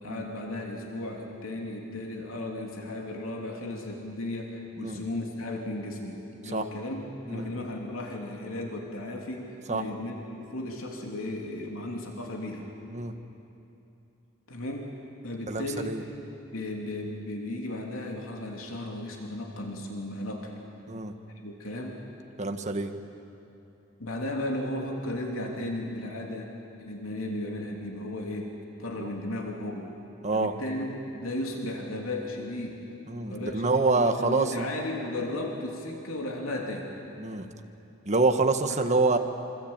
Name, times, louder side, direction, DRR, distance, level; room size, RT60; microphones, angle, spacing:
voice 1, 0.0-12.7 14.5-14.9 15.2-15.9 16.5-20.5 21.4-22.0 24.0-26.5 26.8-28.5 28.8-29.9 30.3-30.9 31.2-32.9 33.2-36.9 38.7-38.9, left 1 dB, 90° left, 1 dB, 3.2 m, -35 dB
voice 2, 15.5-16.0 20.9-21.1 22.4-22.9 29.0-29.1 30.2-30.5 33.1-34.6 37.2-37.5 38.1-39.2, right 3 dB, 35° right, 6 dB, 1.6 m, -26 dB
27.0 x 25.0 x 8.9 m, 2.8 s
head